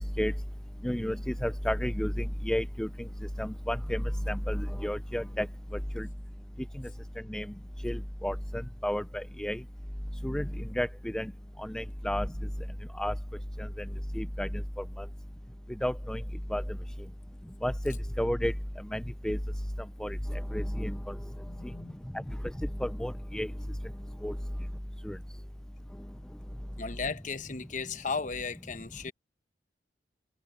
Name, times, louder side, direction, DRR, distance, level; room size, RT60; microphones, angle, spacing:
voice 1, 0.8-2.9 3.4-5.5 6.0-6.1 7.3-7.5 7.8-8.3 8.8-9.6 10.2-10.4 10.8-10.9 11.1-11.3 11.6-12.3 13.0-13.1 13.6-13.7 14.2-14.5 15.8-16.2 16.5-16.6 17.6-18.5 18.9-19.4 20.0-20.2 20.5-21.1 22.8-23.5 24.2-24.3 25.1-25.2, equal, 5° left, 0.4 m, -31 dB
voice 2, 21.5-22.0 26.8-29.1, left 4 dB, 45° left, 1.0 m, -36 dB
head